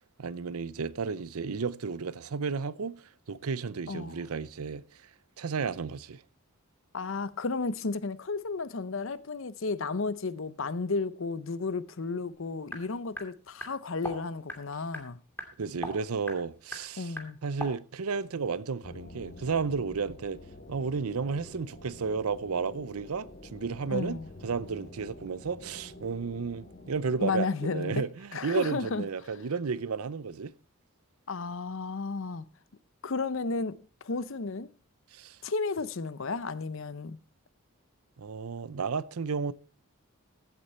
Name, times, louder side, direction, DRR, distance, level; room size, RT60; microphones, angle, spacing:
voice 1, 0.2-3.0 3.3-5.0 5.4-6.2 15.6-17.2 17.4-20.4 20.7-30.5 35.1-35.4 38.2-39.5, right 5 dB, 90° right, 0.6 m, -33 dB
voice 2, 3.9-4.2 6.9-15.2 17.0-17.4 23.9-24.3 27.2-28.0 28.3-29.1 31.3-32.4 33.0-33.8 34.0-34.7 35.4-37.2, left 4 dB, 60° left, 0.7 m, -33 dB
sound 1, 12.3-17.8, left 1 dB, 10° left, 2.3 m, -43 dB
sound 2, 18.8-27.3, left 1 dB, 40° left, 1.2 m, -48 dB
15.0 x 8.2 x 4.3 m
head